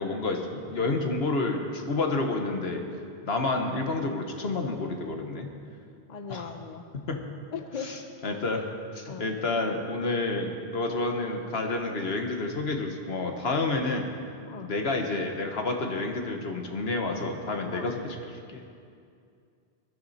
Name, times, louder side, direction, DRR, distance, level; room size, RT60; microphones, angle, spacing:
voice 1, 0.0-2.8 3.2-5.5 6.3-6.5 6.9-7.2 7.8-8.7 8.9-14.1 14.6-18.6, left 3 dB, 75° left, 3 dB, 1.5 m, -29 dB
voice 2, 6.1-6.9 7.5-7.9 9.1-9.3 14.5-14.7 17.7-17.9, left 6 dB, 45° left, 6 dB, 0.8 m, -38 dB
19.0 x 12.0 x 4.3 m, 2.4 s
omnidirectional pair, 1.0 m